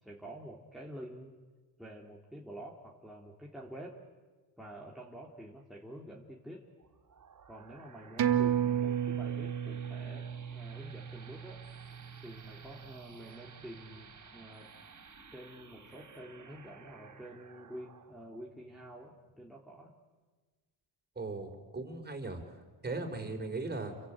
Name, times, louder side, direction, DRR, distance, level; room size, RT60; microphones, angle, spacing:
voice 1, 0.0-1.4 1.8-4.0 4.6-6.7 7.5-11.6 12.2-14.7 15.3-19.9, right 1 dB, ahead, -3 dB, 3.2 m, -48 dB
sound 1, 6.8-19.9, right 5 dB, 40° right, 4.4 m, -55 dB
sound 2, 8.2-13.1 13.5-13.6, right 9 dB, 55° right, 2.2 m, -33 dB
voice 2, 21.1-22.4 22.8-23.9, right 3 dB, 20° right, 5 dB, 4.9 m, -38 dB
29.0 x 23.5 x 8.8 m, 1.3 s
cardioid pair, 100°, 47 cm